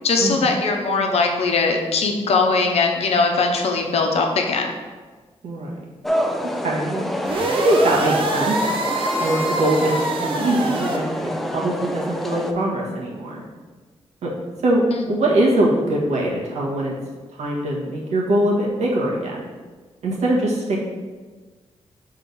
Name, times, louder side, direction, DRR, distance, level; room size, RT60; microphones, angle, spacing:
voice 1, 0.0-4.7 15.0-15.1, left 4 dB, 65° left, 2 dB, 0.9 m, -20 dB
voice 2, 5.4-5.8 6.6-7.1 7.6-8.6 9.2-13.4 14.2-14.3 14.6-16.9 17.4-19.5 20.0-20.8, right 1 dB, 75° right, -4 dB, 1.6 m, -22 dB
sound 1, 6.0-12.5, equal, ahead, 0.4 m, -27 dB
sound 2, 7.2-11.0, right 2 dB, 50° right, 0.8 m, -25 dB
6.2 x 3.7 x 5.4 m, 1.4 s
wide cardioid pair, 175°, 11 cm